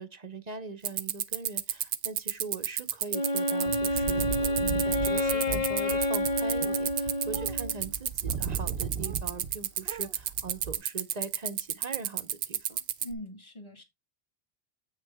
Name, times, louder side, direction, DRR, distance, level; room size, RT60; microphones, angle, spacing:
voice 1, 0.0-4.3 4.6-12.8, right 4 dB, 45° right, 0.8 m, -41 dB
sound 1, 0.8-13.1, right 10 dB, 90° right, 1.0 m, -30 dB
Wind instrument woodwind instrument, 3.1-7.9, left 1 dB, 40° left, 0.7 m, -29 dB
sound 2, 3.7-9.6 9.8-10.8, right 6 dB, 65° right, 0.9 m, -37 dB
voice 2, 13.0-13.8, left 1 dB, 25° left, 1.8 m, -41 dB
8.2 x 6.3 x 3.4 m
omnidirectional pair, 1.1 m